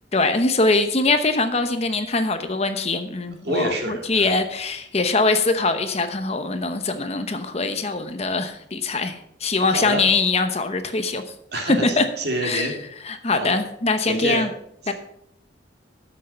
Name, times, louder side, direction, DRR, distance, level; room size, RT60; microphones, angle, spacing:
voice 1, 0.1-11.2 11.7-12.0 12.4-12.7 13.0-14.5 14.9-15.0, left 3 dB, 35° left, 9 dB, 0.9 m, -22 dB
voice 2, 3.4-4.3 9.7-10.0 11.5-12.7 13.3-13.5 14.1-14.5 14.8-14.9, right 2 dB, 55° right, 2 dB, 2.5 m, -27 dB
13.0 x 6.4 x 5.5 m, 0.72 s
head